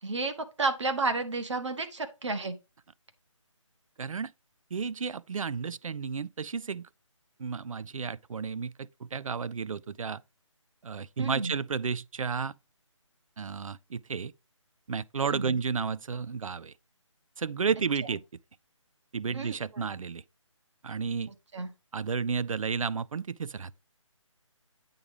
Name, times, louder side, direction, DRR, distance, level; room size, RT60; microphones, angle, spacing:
voice 1, 0.0-2.6 11.2-11.5 15.3-15.6 19.3-19.8 21.5-21.7, right 3 dB, 60° right, 1.6 m, -32 dB
voice 2, 4.0-4.3 4.7-6.9 7.4-10.2 10.8-12.5 13.4-14.3 14.9-16.7 17.4-18.2 19.1-20.2 20.8-21.3 21.9-23.7, right 5 dB, 85° right, 0.5 m, -32 dB
8.7 x 3.7 x 4.9 m
hypercardioid pair, 170°, 17 cm